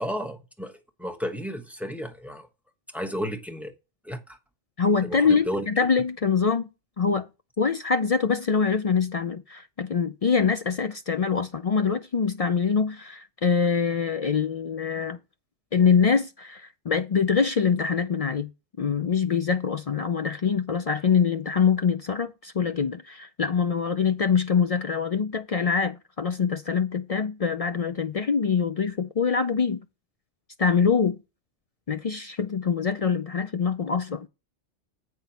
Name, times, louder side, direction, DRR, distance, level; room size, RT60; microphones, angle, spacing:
voice 1, 0.0-2.5 2.9-3.7 4.0-4.4 5.0-5.7, equal, ahead, 1.0 m, -33 dB
voice 2, 4.8-6.7 7.0-7.3 7.6-15.2 15.7-18.5 18.8-29.8 30.6-31.2 31.9-34.3, left 6 dB, 55° left, 0.4 m, -24 dB
8.5 x 6.0 x 4.1 m
omnidirectional pair, 1.2 m